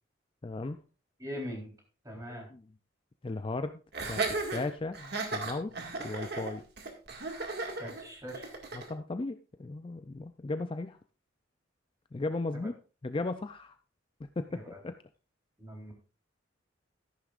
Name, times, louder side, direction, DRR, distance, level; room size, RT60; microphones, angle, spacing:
voice 1, 0.4-0.8 2.3-2.6 3.2-5.7 6.0-6.6 8.7-11.0 12.1-12.7 13.0-13.7 14.4-14.9, left 2 dB, 25° left, 9 dB, 0.4 m, -36 dB
voice 2, 1.2-1.7 2.0-2.5 7.8-8.5 14.5-14.8 15.6-15.9, equal, 15° right, 0 dB, 3.7 m, -41 dB
Laughter, 3.9-8.9, right 3 dB, 55° right, 2.0 m, -35 dB
13.5 x 11.0 x 2.5 m, 0.35 s
head